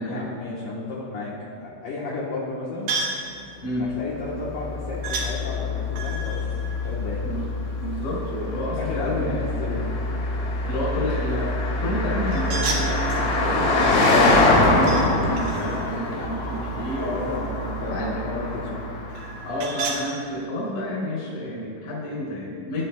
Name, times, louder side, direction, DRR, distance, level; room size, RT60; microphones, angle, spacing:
voice 1, 0.0-2.9 3.9-6.5 6.8-7.2 8.8-9.9 16.7-18.8, left 3 dB, 70° left, -6 dB, 2.0 m, -32 dB
sound 1, 2.9-3.3 5.0-5.3 5.9-7.7 12.3-13.3 14.2-15.1 15.4-17.3 19.1-20.0, right 4 dB, 65° right, 3.0 m, -32 dB
Car passing by, 4.0-19.7, left 2 dB, 85° left, 4.7 m, -25 dB
voice 2, 7.8-9.4 10.6-17.2 17.9-18.2 19.4-22.8, left 1 dB, 45° left, -5 dB, 4.6 m, -30 dB
21.5 x 11.0 x 2.3 m, 2.5 s
omnidirectional pair, 5.4 m